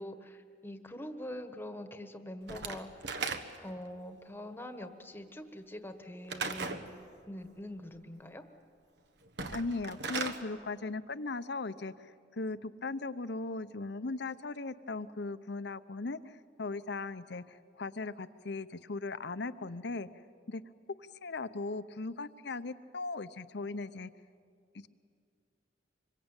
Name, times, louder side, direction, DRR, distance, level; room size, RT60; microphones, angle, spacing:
voice 1, 0.0-2.9 3.6-6.8 7.2-8.4, left 1 dB, 10° left, 8 dB, 1.4 m, -44 dB
Slam / Wood, 2.5-3.8 6.3-6.9 9.3-10.4, right 4 dB, 65° right, 1.4 m, -37 dB
voice 2, 9.5-20.1 20.5-20.6 21.0-24.1, left 3 dB, 65° left, 13 dB, 0.8 m, -38 dB
26.0 x 23.0 x 9.0 m, 2.2 s
head